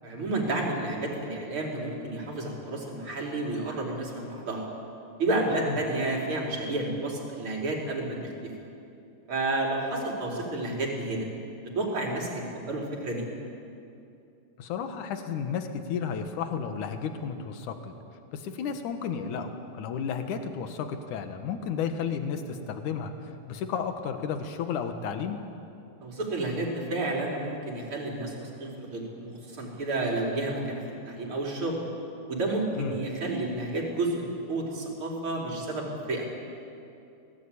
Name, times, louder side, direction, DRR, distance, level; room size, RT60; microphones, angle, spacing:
voice 1, 0.0-4.7 5.2-8.5 9.3-11.3 11.7-13.3 26.0-31.8 32.3-36.3, right 2 dB, 35° right, -2 dB, 4.5 m, -31 dB
voice 2, 14.6-17.9 18.3-25.4 32.8-33.0, left 6 dB, 60° left, 7 dB, 2.7 m, -33 dB
25.5 x 18.5 x 8.7 m, 2.7 s
omnidirectional pair, 4.3 m